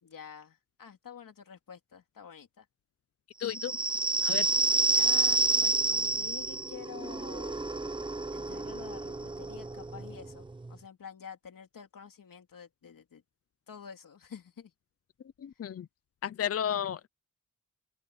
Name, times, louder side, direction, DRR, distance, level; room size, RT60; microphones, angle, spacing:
voice 1, 0.0-2.6 4.9-7.6 8.3-13.2 13.7-14.7, left 7 dB, 85° left, 3.1 m, -48 dB
voice 2, 3.4-3.8 4.2-4.5 15.4-15.9 16.2-17.1, left 9 dB, 50° left, 0.4 m, -33 dB
sound 1, 3.4-10.7, right 3 dB, 15° right, 0.6 m, -29 dB
open air
wide cardioid pair, 180°, 32 cm